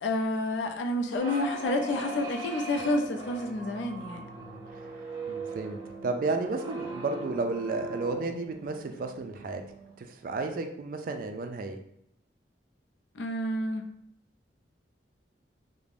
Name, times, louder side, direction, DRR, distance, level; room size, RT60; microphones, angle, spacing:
voice 1, 0.0-4.3 13.2-13.8, left 1 dB, 85° left, 4 dB, 0.4 m, -29 dB
sound 1, 1.2-9.9, right 2 dB, 20° right, 0.7 m, -40 dB
voice 2, 4.4-9.6 10.0-11.8, right 3 dB, 50° right, 6 dB, 0.3 m, -33 dB
2.5 x 2.1 x 3.2 m, 0.71 s
head